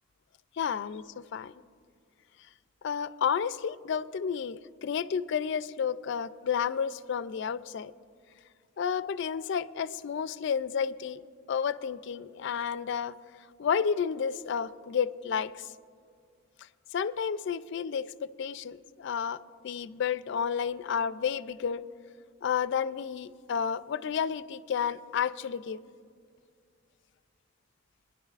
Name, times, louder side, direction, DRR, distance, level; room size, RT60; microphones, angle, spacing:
voice 1, 0.6-1.5 2.8-7.9 8.8-11.2 11.5-13.1 13.6-15.7 16.9-21.8 22.4-25.8, left 7 dB, 60° left, 15 dB, 0.3 m, -31 dB
25.0 x 10.5 x 2.4 m, 2.2 s
head